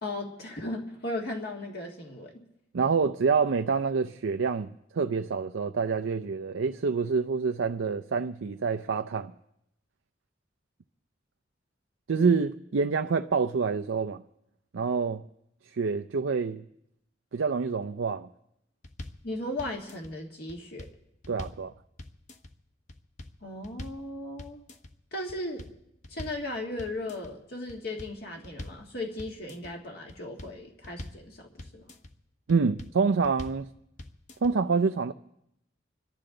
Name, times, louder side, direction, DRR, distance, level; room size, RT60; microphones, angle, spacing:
voice 1, 0.0-2.4 19.2-20.9 23.4-24.6 25.1-25.7 26.1-31.9, left 1 dB, 55° left, 1.8 m, -36 dB
voice 2, 2.7-9.3 12.1-14.2 14.7-15.2 15.7-16.6 17.3-18.3 21.3-21.7 32.5-33.7 34.4-35.1, right 5 dB, 90° right, 0.5 m, -27 dB
sound 1, 18.8-19.3 19.6-20.1 20.5-21.7 22.0-22.5 22.9-23.4 23.6-24.1 24.4-24.9 25.3-26.5 26.8-27.3 27.7-28.9 29.2-29.7 30.1-31.3 31.6-32.1 32.5-33.0 33.2-33.7 34.0-34.5, left 1 dB, 40° left, 0.9 m, -43 dB
26.0 x 11.5 x 3.9 m
head